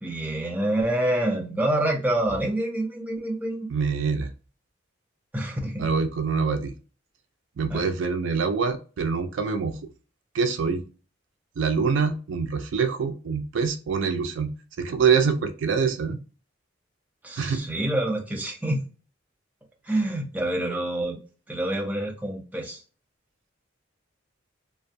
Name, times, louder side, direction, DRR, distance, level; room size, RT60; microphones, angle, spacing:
voice 1, 0.0-3.7 5.3-5.9 7.7-7.9 17.2-18.8 19.9-21.2 21.5-22.8, right 1 dB, 10° right, 0 dB, 0.5 m, -27 dB
voice 2, 3.7-4.3 5.8-6.7 7.6-9.8 10.3-10.8 11.6-14.5 14.8-16.2 17.4-17.6, right 5 dB, 75° right, 8 dB, 0.4 m, -25 dB
2.5 x 2.2 x 2.5 m, 0.35 s
head